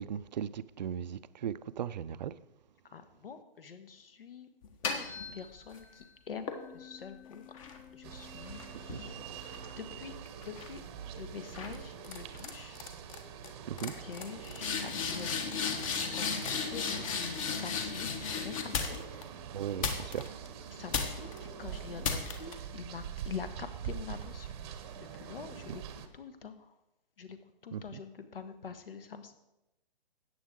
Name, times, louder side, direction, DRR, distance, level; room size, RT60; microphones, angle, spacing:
voice 1, 0.0-2.3 8.9-9.0 13.7-13.9 19.5-20.3 27.7-28.0, right 9 dB, 50° right, 0.5 m, -37 dB
voice 2, 2.8-4.5 4.8-7.5 7.9-10.8 11.2-12.8 13.8-19.3 20.7-24.6 24.9-25.8 26.1-26.7 27.2-27.4 27.6-29.3, left 6 dB, 70° left, 1.5 m, -46 dB
sound 1, 4.6-5.9 6.5-10.0 10.4-10.8 11.5-11.8 12.0-12.5 12.7-13.2 13.4-13.5 13.8-19.2 19.8-20.5 20.9-21.4 22.0-22.5, left 5 dB, 35° left, 1.3 m, -36 dB
sound 2, 8.0-26.1, right 8 dB, 25° right, 0.9 m, -45 dB
14.0 x 9.1 x 3.8 m
hypercardioid pair, 150°, 29 cm